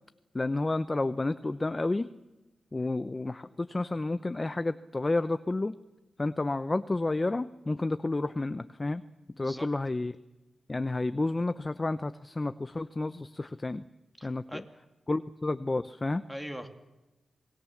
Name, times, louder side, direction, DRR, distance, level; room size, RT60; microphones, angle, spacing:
voice 1, 0.3-2.1 2.7-5.8 6.2-9.0 9.4-10.1 10.7-13.9 14.2-14.6 15.1-16.2, left 2 dB, 25° left, 12 dB, 0.7 m, -30 dB
voice 2, 9.4-9.7 14.2-14.6 16.3-16.7, equal, 5° right, 6 dB, 2.6 m, -41 dB
27.0 x 20.0 x 7.3 m, 1.1 s
cardioid pair, 80°, 0 cm